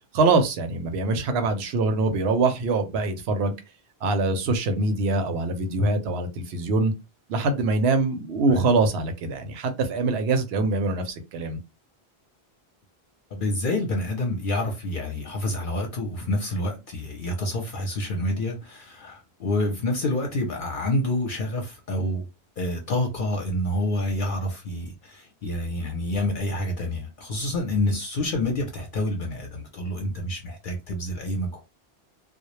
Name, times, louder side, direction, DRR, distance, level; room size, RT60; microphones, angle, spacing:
voice 1, 0.1-3.5 4.0-6.9 7.3-11.6, right 3 dB, 85° right, 0.8 m, -24 dB
voice 2, 13.3-22.3 22.6-31.6, left 1 dB, 60° left, 0.7 m, -28 dB
2.1 x 2.0 x 3.0 m
omnidirectional pair, 1.1 m